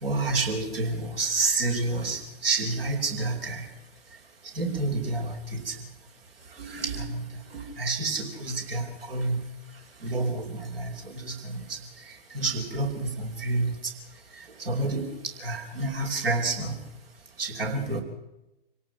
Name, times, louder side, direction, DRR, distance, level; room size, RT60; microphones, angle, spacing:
voice 1, 0.0-3.7 4.5-5.7 6.6-9.4 10.0-11.8 12.0-13.7 14.6-15.1 15.4-16.8 17.4-18.0, right 3 dB, 75° right, 3 dB, 4.9 m, -29 dB
25.5 x 18.0 x 5.7 m, 0.93 s
figure-of-eight pair, 110°, 29 cm